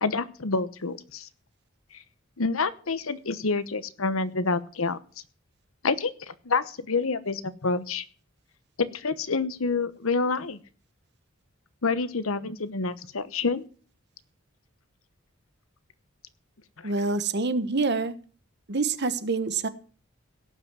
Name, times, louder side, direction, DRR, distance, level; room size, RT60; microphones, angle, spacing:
voice 1, 0.0-1.3 1.9-2.0 2.4-5.0 5.8-8.0 8.8-10.6 11.8-13.6 16.8-16.9, left 4 dB, 85° left, 14 dB, 1.0 m, -28 dB
voice 2, 16.8-18.2 18.7-19.7, right 3 dB, 55° right, 12 dB, 1.1 m, -26 dB
17.5 x 5.9 x 7.5 m, 0.40 s
head